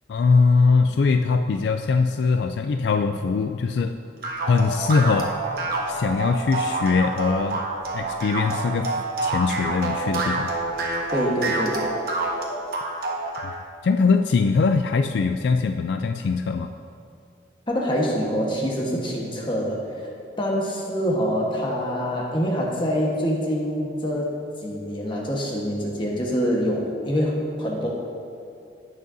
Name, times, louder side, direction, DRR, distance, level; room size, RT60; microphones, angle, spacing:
voice 1, 0.1-4.0 4.5-5.3 5.9-7.6 7.9-8.9 9.2-10.5 13.8-16.7, left 4 dB, 65° left, 7 dB, 0.3 m, -21 dB
sound 1, 4.2-13.5, right 2 dB, 55° right, 1.3 m, -27 dB
voice 2, 11.1-11.8 17.7-20.0 20.4-27.9, equal, 25° left, -2 dB, 1.3 m, -25 dB
17.0 x 6.4 x 2.7 m, 2.5 s
head